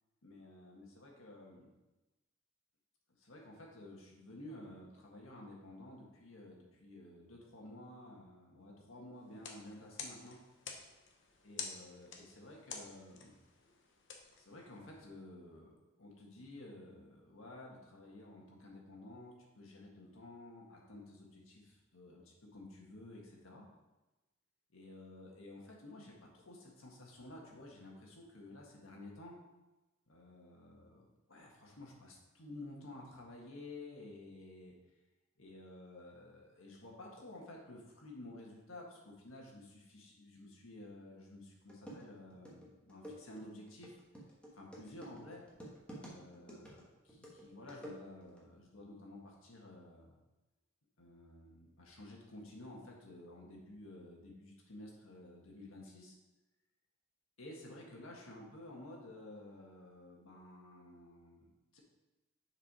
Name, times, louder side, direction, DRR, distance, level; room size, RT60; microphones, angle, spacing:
voice 1, 0.2-1.7 3.2-10.4 11.4-13.4 14.4-15.7 16.0-23.6 24.7-29.4 30.1-34.7 35.4-44.0 44.5-45.4 45.9-50.2 51.0-56.1 57.4-61.8, left 1 dB, 80° left, -2 dB, 1.7 m, -52 dB
sound 1, 9.3-15.1, left 5 dB, 60° left, 0.9 m, -50 dB
sound 2, 41.3-41.4 41.7-48.4, equal, 5° left, 1.4 m, -52 dB
6.9 x 4.8 x 4.7 m, 1.1 s
head